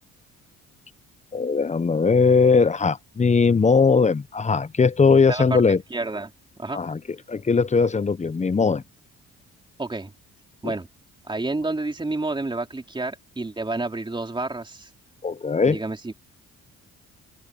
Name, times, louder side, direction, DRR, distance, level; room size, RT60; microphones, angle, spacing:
voice 1, 1.3-5.8 6.7-7.0 7.3-8.8 10.6-10.7 15.2-15.8, left 5 dB, 25° left, 0.8 m, -19 dB
voice 2, 5.1-5.6 5.9-6.3 6.6-6.8 9.8-10.1 10.6-10.9 11.2-14.9 15.7-16.1, right 2 dB, 15° right, 3.6 m, -29 dB
open air
cardioid pair, 90°, 30 cm